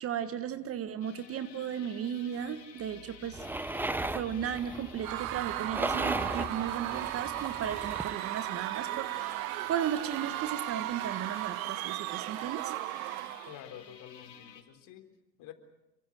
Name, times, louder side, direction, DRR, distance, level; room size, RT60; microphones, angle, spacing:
voice 1, 0.0-3.4 4.0-12.7, right 9 dB, 30° right, 10 dB, 1.5 m, -35 dB
sound 1, 1.0-14.6, left 7 dB, 80° left, 3.8 m, -52 dB
sound 2, 3.3-8.2, right 2 dB, 5° right, 0.9 m, -36 dB
Screaming / Cheering / Crowd, 5.0-13.6, right 18 dB, 60° right, 0.8 m, -36 dB
voice 2, 13.5-15.1 15.4-15.5, left 10 dB, 40° left, 6 dB, 3.9 m, -48 dB
28.5 x 24.0 x 6.6 m, 0.98 s
hypercardioid pair, 100°, 49 cm